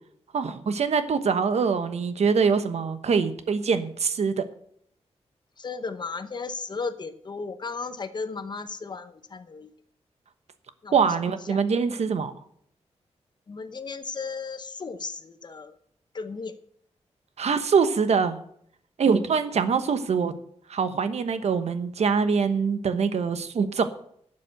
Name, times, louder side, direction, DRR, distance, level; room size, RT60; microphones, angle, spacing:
voice 1, 0.3-4.5 10.9-12.3 17.4-18.4 19.0-20.3 20.7-23.9, right 5 dB, 70° right, 10 dB, 1.1 m, -24 dB
voice 2, 5.6-9.7 10.8-11.1 11.5-11.6 13.5-15.8 16.1-16.5, left 4 dB, 40° left, 11 dB, 0.8 m, -35 dB
12.0 x 7.6 x 7.9 m, 0.66 s
wide cardioid pair, 165°, 12 cm